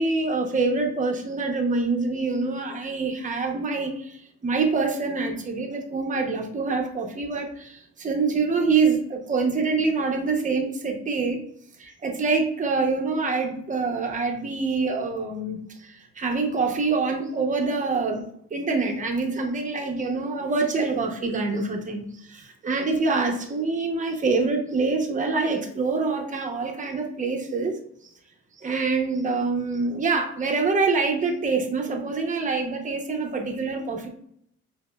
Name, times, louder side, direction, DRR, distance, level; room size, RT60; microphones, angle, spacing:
voice 1, 0.0-11.4 11.8-27.8 28.6-34.1, right 4 dB, 25° right, 2 dB, 0.7 m, -25 dB
5.0 x 2.1 x 2.2 m, 0.68 s
cardioid pair, 90°, 30 cm